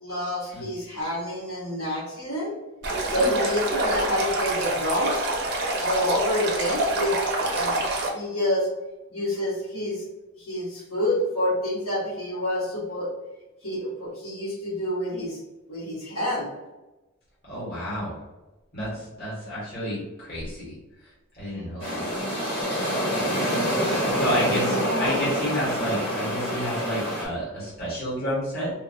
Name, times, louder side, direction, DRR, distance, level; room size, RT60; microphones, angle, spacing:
voice 1, 0.0-2.5 3.1-5.3 5.8-7.1 7.5-7.8 8.1-8.7 9.1-10.0 10.4-13.1 13.6-15.4 15.7-16.5 24.1-25.3, left 1 dB, 85° left, -9 dB, 1.5 m, -28 dB
Stream, 2.8-8.1, right 2 dB, 50° right, 0.6 m, -26 dB
voice 2, 17.4-18.1 18.7-20.7 21.3-22.1 24.1-28.7, equal, 45° left, -8 dB, 1.4 m, -30 dB
sound 1, 21.8-27.3, equal, 25° left, 1.1 m, -26 dB
2.8 x 2.4 x 2.7 m, 1.0 s
head